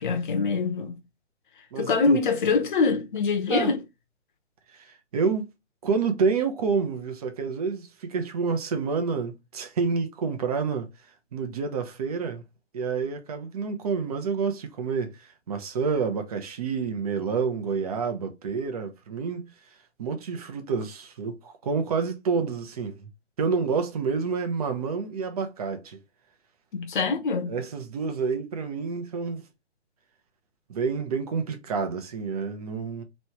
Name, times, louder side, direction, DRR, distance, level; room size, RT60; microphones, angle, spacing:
voice 1, 0.0-1.0 1.8-3.8 26.7-27.6, left 4 dB, 45° left, 0.9 m, -24 dB
voice 2, 1.7-2.2 3.5-3.7 4.7-5.5 5.8-10.9 11.3-12.4 12.7-19.5 20.0-23.1 23.4-26.0 27.5-29.4 30.7-33.0, right 5 dB, 35° right, 0.8 m, -28 dB
3.2 x 2.9 x 4.4 m
hypercardioid pair, 150°, 36 cm